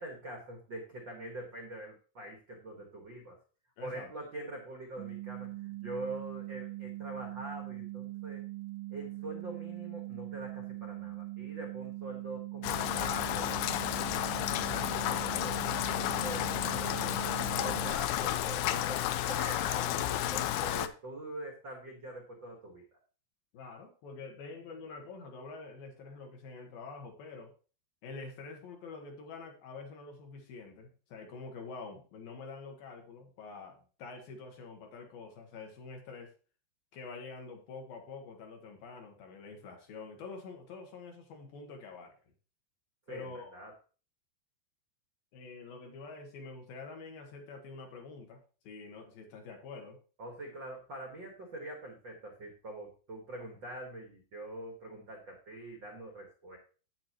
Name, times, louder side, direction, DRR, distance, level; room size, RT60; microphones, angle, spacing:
voice 1, 0.0-3.4 3.8-8.4 8.9-13.9 14.7-22.9 43.1-43.7 50.2-56.6, right 1 dB, 70° right, 1 dB, 1.1 m, -44 dB
voice 2, 3.8-4.1 23.5-27.5 28.0-36.3 36.9-42.2 43.1-43.5 45.3-48.4 48.6-50.0, left 4 dB, 70° left, 3 dB, 2.7 m, -46 dB
sound 1, 5.0-17.9, right 19 dB, 85° right, 3.6 m, -41 dB
Rain, 12.6-20.9, left 13 dB, 85° left, 2.4 m, -32 dB
9.1 x 8.5 x 3.0 m, 0.37 s
omnidirectional pair, 4.8 m